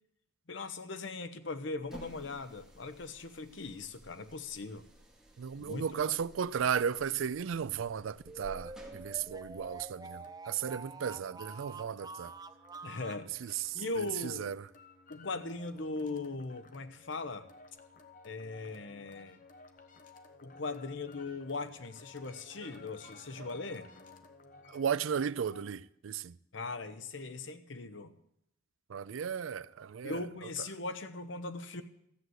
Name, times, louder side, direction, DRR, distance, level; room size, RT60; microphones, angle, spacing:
voice 1, 0.5-4.9 5.6-6.2 12.8-14.5 15.1-17.5 18.2-19.4 20.4-23.9 26.5-28.2 30.0-31.8, left 3 dB, 70° left, 0.9 m, -39 dB
sound 1, 1.8-9.9, right 1 dB, 5° right, 2.2 m, -55 dB
voice 2, 5.4-12.3 13.4-13.8 14.2-14.6 24.7-26.3 28.9-30.2, right 7 dB, 85° right, 0.4 m, -35 dB
sound 2, 8.3-25.7, left 3 dB, 40° left, 1.0 m, -57 dB
sound 3, 8.3-13.3, right 3 dB, 20° right, 0.5 m, -47 dB
13.5 x 7.9 x 7.9 m
head